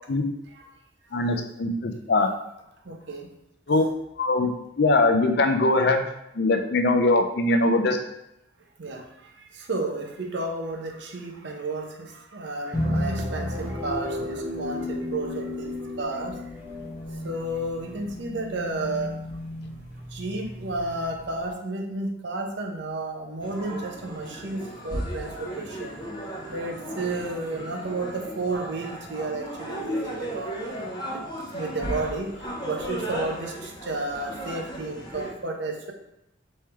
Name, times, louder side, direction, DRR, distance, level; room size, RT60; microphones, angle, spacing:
voice 1, 1.1-2.3 3.7-3.8 4.2-6.0 6.4-8.0, left 2 dB, 50° left, 5 dB, 0.5 m, -22 dB
voice 2, 2.9-3.3 8.8-9.0 9.7-12.1 12.3-15.7 16.0-16.4 17.2-19.1 20.1-26.0 26.5-32.3 32.6-33.5 33.8-35.9, right 2 dB, 60° right, 2 dB, 0.7 m, -32 dB
sound 1, 12.7-21.5, left 1 dB, 10° right, 0.9 m, -33 dB
sound 2, 23.4-35.3, right 1 dB, 20° left, 0.8 m, -35 dB
3.6 x 3.2 x 4.4 m, 0.84 s
head